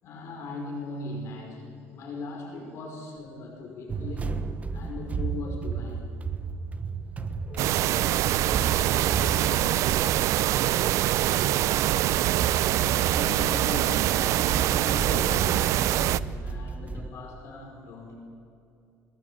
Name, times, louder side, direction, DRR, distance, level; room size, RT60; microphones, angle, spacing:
voice 1, 0.0-4.4 4.7-6.0 13.1-18.1, left 3 dB, 55° left, 1 dB, 5.4 m, -39 dB
sound 1, 3.9-17.1, right 5 dB, 25° right, 1.1 m, -34 dB
voice 2, 7.4-11.9, left 2 dB, 30° left, 0 dB, 5.5 m, -49 dB
sound 2, 7.6-16.2, right 14 dB, 65° right, 0.5 m, -24 dB
22.0 x 20.5 x 8.9 m, 2.6 s
cardioid pair, 135°, 6 cm